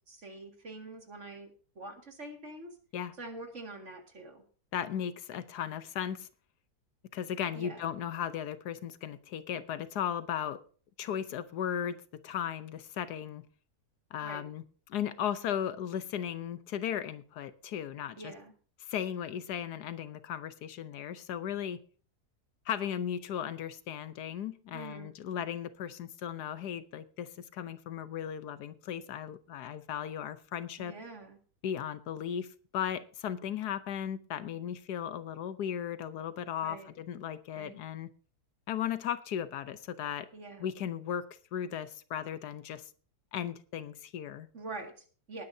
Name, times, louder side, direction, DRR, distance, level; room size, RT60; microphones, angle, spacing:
voice 1, 0.1-2.7 3.2-4.4 7.5-7.8 14.2-14.4 18.2-18.5 24.7-25.1 30.8-31.4 36.6-36.9 37.5-37.8 40.3-40.7 44.5-45.4, right 2 dB, 45° right, 3 dB, 2.4 m, -45 dB
voice 2, 4.7-6.3 7.1-10.6 11.0-13.4 14.1-18.3 18.8-21.8 22.7-30.9 31.6-32.5 32.7-38.1 38.7-40.3 40.6-42.8 43.3-44.5, left 9 dB, 80° left, 13 dB, 1.3 m, -36 dB
19.5 x 9.6 x 2.7 m, 0.41 s
omnidirectional pair, 1.7 m